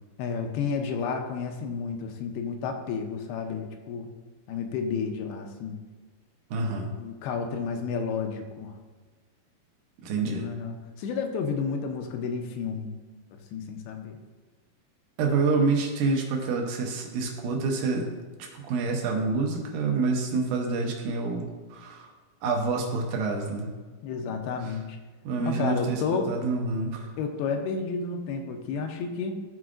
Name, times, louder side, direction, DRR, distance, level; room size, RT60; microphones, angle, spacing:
voice 1, 0.2-4.1 4.5-5.8 6.8-8.7 10.2-13.0 13.3-14.2 24.0-25.0 25.4-26.3 27.2-29.4, left 5 dB, 85° left, 4 dB, 2.6 m, -31 dB
voice 2, 6.5-6.9 10.0-10.5 15.2-18.1 18.4-22.1 22.4-23.7 24.6-24.7 25.2-26.0 26.3-27.1, right 4 dB, 75° right, 1 dB, 2.0 m, -27 dB
13.5 x 4.7 x 2.5 m, 1.4 s
omnidirectional pair, 4.6 m